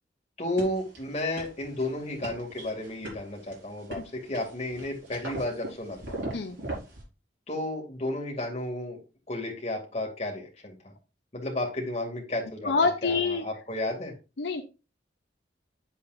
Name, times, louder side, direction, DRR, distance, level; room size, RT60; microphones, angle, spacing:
voice 1, 0.4-6.0 7.5-9.0 9.3-10.7 11.3-14.1, left 1 dB, 35° left, 0 dB, 2.3 m, -32 dB
sound 1, 0.6-7.0, right 2 dB, 75° right, 4.8 m, -40 dB
voice 2, 12.6-13.4 14.4-14.6, left 4 dB, 65° left, 5 dB, 0.7 m, -26 dB
8.6 x 7.3 x 2.5 m, 0.30 s
head